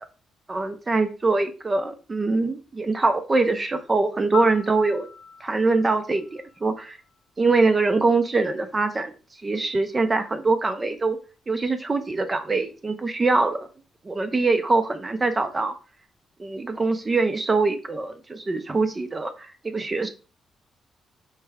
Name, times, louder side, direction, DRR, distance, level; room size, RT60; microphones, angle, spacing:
voice 1, 0.5-5.1 5.4-7.0 7.4-9.1 9.4-11.2 11.5-13.6 14.0-15.7 16.4-20.1, right 3 dB, 25° right, 7 dB, 0.5 m, -23 dB
Piano, 4.3-7.3 15.4-15.6, left 6 dB, 70° left, 0.7 m, -38 dB
4.6 x 3.2 x 3.4 m, 0.33 s
cardioid pair, 110°, 0 cm